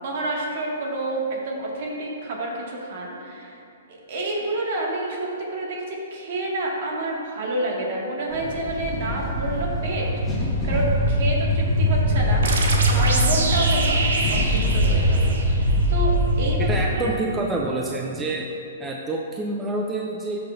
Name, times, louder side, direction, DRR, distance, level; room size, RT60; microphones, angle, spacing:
voice 1, 0.0-3.6 4.1-16.7 16.9-17.2, right 2 dB, 55° right, -3 dB, 1.9 m, -29 dB
sound 1, 8.3-16.8, equal, 15° left, 1.4 m, -22 dB
sound 2, 12.4-15.9, right 3 dB, 80° right, 1.1 m, -26 dB
voice 2, 16.7-18.5 18.8-20.4, right 2 dB, 15° right, -1 dB, 0.5 m, -27 dB
13.0 x 5.7 x 2.6 m, 2.7 s
hypercardioid pair, 145°, 0 cm